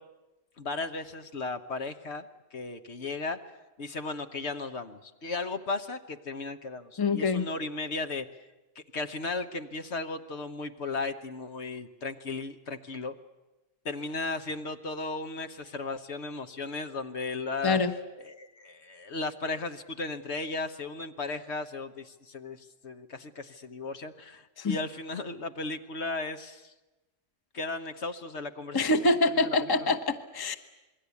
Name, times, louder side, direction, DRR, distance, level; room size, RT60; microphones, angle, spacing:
voice 1, 0.6-2.3 2.5-3.5 3.8-8.3 8.7-13.1 13.8-17.8 18.2-26.7 27.5-29.9, left 3 dB, 60° left, 8 dB, 1.4 m, -36 dB
voice 2, 7.0-7.5 17.6-17.9 24.6-24.8 28.7-30.6, left 3 dB, 20° left, 7 dB, 1.0 m, -25 dB
27.0 x 21.5 x 8.4 m, 1.1 s
omnidirectional pair, 1.3 m